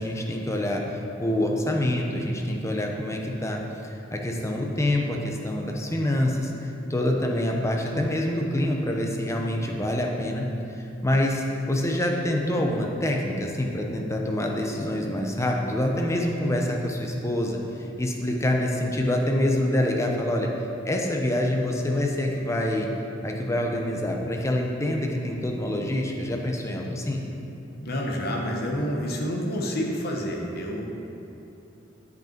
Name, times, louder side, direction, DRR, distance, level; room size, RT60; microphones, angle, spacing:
voice 1, 0.0-10.5 10.7-17.6 18.0-20.5 20.8-22.9 23.2-27.2, left 1 dB, 15° left, 1 dB, 0.7 m, -26 dB
voice 2, 27.8-30.8, equal, 55° left, 0 dB, 1.0 m, -28 dB
8.1 x 5.5 x 4.5 m, 2.8 s
head